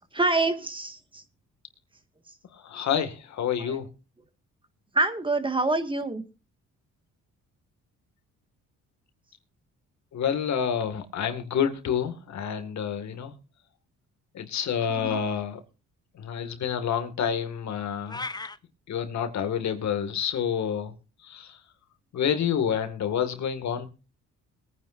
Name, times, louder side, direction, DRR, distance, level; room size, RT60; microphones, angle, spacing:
voice 1, 0.1-1.2 3.6-3.8 4.9-6.2 14.9-15.2, right 2 dB, 15° right, 1.8 m, -26 dB
voice 2, 2.5-3.9 10.1-13.3 14.3-15.6 16.1-18.3 18.9-20.9 21.2-21.6 22.1-23.9, left 8 dB, 65° left, 2.1 m, -28 dB
sound 1, 18.1-18.6, left 3 dB, 15° left, 0.7 m, -35 dB
21.5 x 9.9 x 2.6 m
cardioid pair, 90°, 30 cm